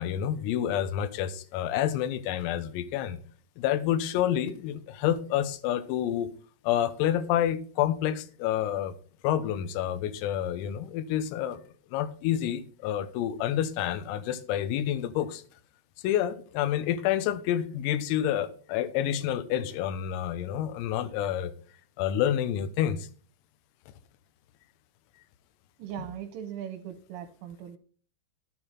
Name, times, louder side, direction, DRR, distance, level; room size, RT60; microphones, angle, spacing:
voice 1, 0.0-3.2 3.6-6.3 6.7-9.0 9.2-11.6 11.9-15.4 16.0-21.5 22.0-23.1, left 11 dB, 85° left, 12 dB, 3.6 m, -28 dB
voice 2, 25.8-27.8, right 10 dB, 80° right, 6 dB, 3.2 m, -39 dB
11.5 x 8.8 x 4.3 m, 0.42 s
omnidirectional pair, 6.0 m